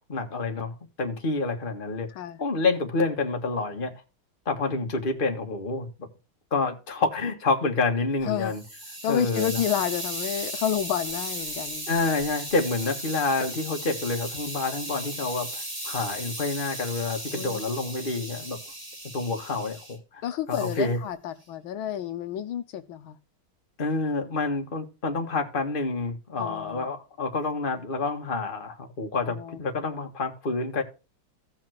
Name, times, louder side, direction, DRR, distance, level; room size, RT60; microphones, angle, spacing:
voice 1, 0.1-2.1 2.4-3.9 4.5-6.1 6.5-8.6 9.1-9.6 11.9-18.6 19.1-20.2 20.5-21.0 23.8-30.8, left 3 dB, 25° left, 1.7 m, -28 dB
Hiss, 8.2-20.0 20.5-20.9, right 1 dB, 20° right, 2.0 m, -36 dB
voice 2, 9.0-11.9 17.3-17.6 20.2-23.2 26.3-26.9 29.3-29.6, left 10 dB, 75° left, 1.6 m, -30 dB
16.5 x 5.7 x 2.9 m
omnidirectional pair, 2.3 m